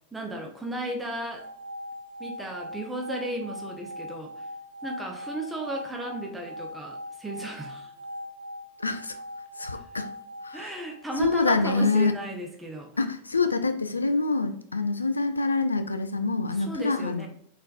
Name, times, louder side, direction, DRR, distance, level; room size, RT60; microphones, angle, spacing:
voice 1, 0.1-1.5 2.2-4.4 4.8-7.9 9.7-9.9 10.5-12.9 16.5-17.3, right 1 dB, 10° right, 2 dB, 0.8 m, -35 dB
sound 1, 1.3-11.4, left 1 dB, 80° right, 0.7 m, -41 dB
voice 2, 8.8-9.2 9.6-10.1 10.4-10.6 11.2-12.1 13.0-17.3, left 3 dB, 80° left, 9 dB, 0.4 m, -26 dB
4.2 x 3.9 x 2.5 m, 0.64 s
figure-of-eight pair, 90°, 0 cm